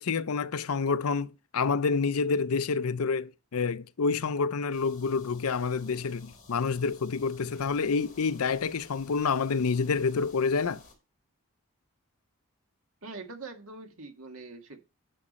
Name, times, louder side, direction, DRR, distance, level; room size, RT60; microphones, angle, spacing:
voice 1, 0.0-10.8, left 5 dB, 85° left, 0.6 m, -28 dB
sound 1, 4.7-10.9, left 3 dB, 40° left, 4.1 m, -54 dB
voice 2, 13.0-14.8, right 3 dB, 75° right, 1.9 m, -43 dB
10.0 x 6.1 x 4.2 m
head